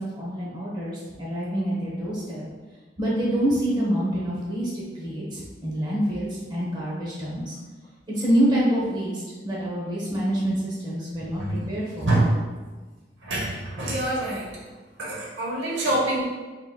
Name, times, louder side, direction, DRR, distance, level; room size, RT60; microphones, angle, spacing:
voice 1, 0.0-2.4 3.0-7.5 8.2-12.1, right 1 dB, 25° right, -6 dB, 1.0 m, -26 dB
voice 2, 12.0-12.4 13.2-14.5 15.0-16.2, right 1 dB, 85° right, -4 dB, 1.0 m, -25 dB
4.0 x 3.9 x 2.3 m, 1.3 s
head